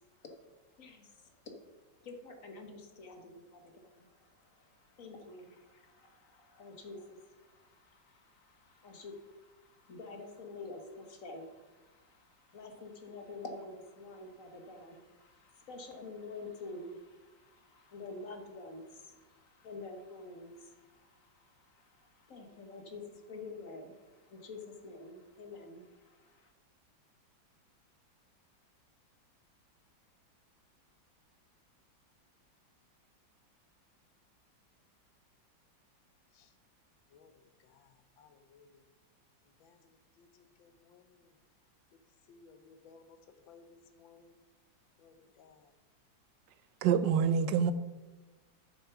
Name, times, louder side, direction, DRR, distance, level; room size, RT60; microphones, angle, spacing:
voice 1, 0.8-1.4 2.0-26.5, left 3 dB, 50° left, 5 dB, 1.4 m, -49 dB
voice 2, 37.1-38.8 39.6-41.3 42.3-43.2 43.5-44.4 45.0-45.7, left 5 dB, 85° left, 9 dB, 1.6 m, -60 dB
voice 3, 46.8-47.7, right 7 dB, 75° right, 12 dB, 1.2 m, -26 dB
9.1 x 6.7 x 5.9 m, 1.2 s
omnidirectional pair, 2.1 m